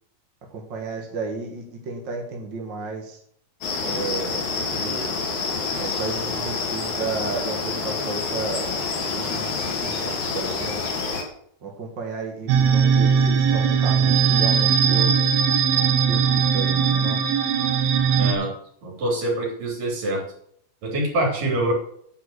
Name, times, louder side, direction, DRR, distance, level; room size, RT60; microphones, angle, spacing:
voice 1, 0.5-3.2 3.8-5.1 5.8-8.8 9.0-10.8 11.6-15.4 16.1-17.2, right 4 dB, 40° right, 0 dB, 1.8 m, -33 dB
sound 1, 3.6-11.2, left 4 dB, 75° left, 4.2 m, -27 dB
sound 2, 12.5-18.3, right 6 dB, 85° right, 2.9 m, -19 dB
voice 2, 18.2-18.5 18.8-20.2 20.8-21.7, right 1 dB, 65° right, -1 dB, 5.1 m, -25 dB
9.7 x 6.0 x 8.2 m, 0.65 s
omnidirectional pair, 4.2 m